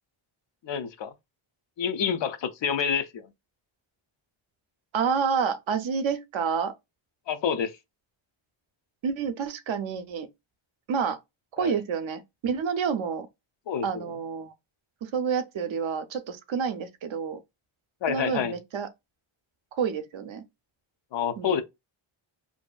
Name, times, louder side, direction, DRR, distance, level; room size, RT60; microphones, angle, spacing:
voice 1, 0.6-1.1 1.8-3.3 7.3-7.7 11.6-11.7 13.7-14.1 18.0-18.5 21.1-21.6, left 7 dB, 60° left, 0.5 m, -28 dB
voice 2, 4.9-6.7 9.0-10.3 10.9-11.2 11.5-13.3 13.8-14.5 15.0-17.4 18.1-18.9 19.8-20.4 21.4-21.6, right 6 dB, 65° right, 0.5 m, -29 dB
2.6 x 2.4 x 2.2 m
wide cardioid pair, 165°, 50 cm